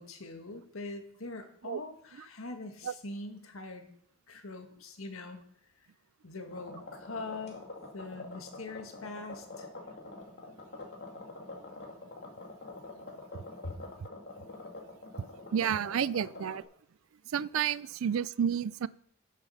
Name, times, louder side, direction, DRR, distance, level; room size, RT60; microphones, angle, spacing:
voice 1, 0.0-3.9 4.3-5.4 6.2-7.6 7.9-9.7, left 2 dB, 85° left, 1.8 m, -43 dB
sound 1, 6.5-16.6, left 2 dB, 55° left, 2.6 m, -45 dB
voice 2, 15.5-16.6 17.3-18.9, right 8 dB, 75° right, 0.4 m, -30 dB
12.5 x 7.4 x 5.7 m
head